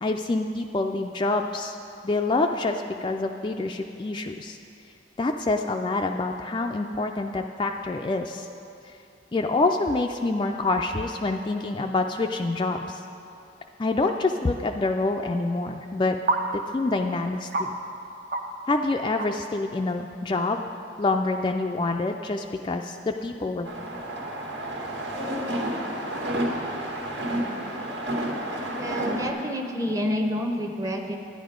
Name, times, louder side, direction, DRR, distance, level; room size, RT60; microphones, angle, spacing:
voice 1, 0.0-1.7 2.0-4.6 5.2-8.5 9.3-13.0 13.8-16.2 16.5-17.7 18.6-20.7 21.0-23.7, left 3 dB, 25° left, 3 dB, 0.3 m, -26 dB
sound 1, 14.1-14.2 16.3-16.4 16.9-17.0 17.5-17.7 18.3-18.4 18.7-18.8 19.2-19.4, right 3 dB, 50° right, 0.7 m, -26 dB
sound 2, 23.6-29.3, right 1 dB, 80° right, 1.8 m, -30 dB
voice 2, 28.7-31.2, equal, 20° right, 3 dB, 0.8 m, -28 dB
11.5 x 10.0 x 5.1 m, 2.7 s
head